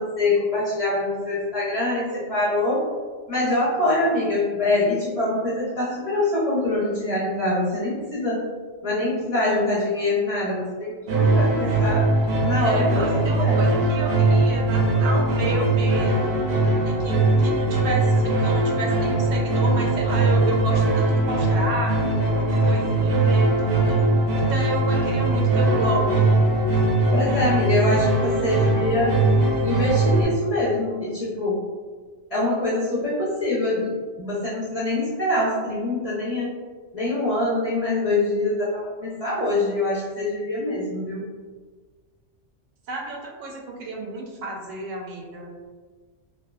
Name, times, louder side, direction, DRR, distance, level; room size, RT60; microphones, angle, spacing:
voice 1, 0.0-2.8 3.3-8.4 8.8-12.1 12.4-13.0 13.4-13.6 27.1-29.1 29.6-31.6 32.3-33.9 34.2-36.5 36.9-41.2, left 2 dB, 40° left, -9 dB, 0.6 m, -24 dB
sound 1, 11.1-30.3, right 2 dB, 60° right, 0.6 m, -20 dB
voice 2, 12.2-16.4 16.8-24.0 24.4-26.3 42.9-45.5, right 2 dB, 90° right, -1 dB, 0.9 m, -31 dB
2.6 x 2.1 x 2.2 m, 1.4 s
omnidirectional pair, 1.3 m